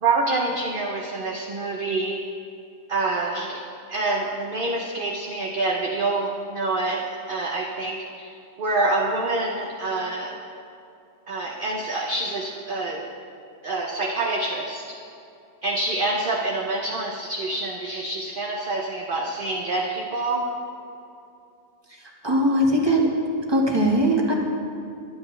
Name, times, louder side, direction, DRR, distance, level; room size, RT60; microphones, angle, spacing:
voice 1, 0.0-2.2 2.9-3.6 3.9-8.3 8.6-10.4 11.3-13.0 13.6-14.9 15.6-20.5, right 2 dB, 40° right, -1 dB, 1.0 m, -26 dB
voice 2, 22.2-23.1 23.5-24.3, right 1 dB, 15° right, -2 dB, 1.7 m, -20 dB
23.5 x 10.0 x 3.3 m, 2.6 s
omnidirectional pair, 1.6 m